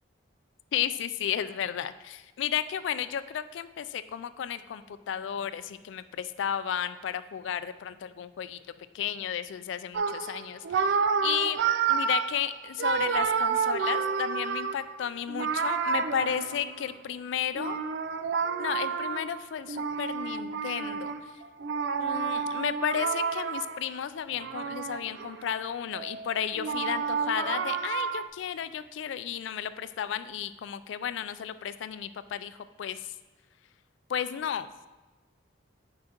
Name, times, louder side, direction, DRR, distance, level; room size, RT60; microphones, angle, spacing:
voice 1, 0.7-8.6 8.9-11.0 11.2-11.6 11.9-17.8 18.6-21.1 22.0-33.1 34.1-34.7, left 9 dB, 80° left, 14 dB, 0.3 m, -33 dB
sound 1, 9.9-16.9 17.5-23.9 24.3-25.5 25.9-28.3, right 6 dB, 65° right, 0.3 m, -30 dB
8.7 x 4.7 x 2.9 m, 1.2 s
head